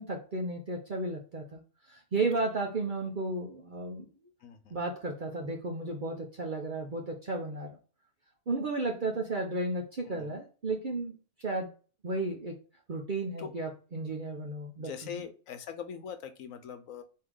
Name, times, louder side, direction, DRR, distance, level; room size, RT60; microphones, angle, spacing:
voice 1, 0.0-1.6 1.9-4.1 4.7-7.7 8.5-11.1 11.4-11.7 12.0-12.6 12.9-15.2, right 2 dB, 45° right, 0 dB, 0.8 m, -33 dB
voice 2, 4.4-4.8 10.0-10.4 13.4-13.5 14.8-17.0, left 7 dB, 80° left, 8 dB, 1.1 m, -42 dB
4.6 x 2.8 x 3.7 m, 0.35 s
omnidirectional pair, 1.4 m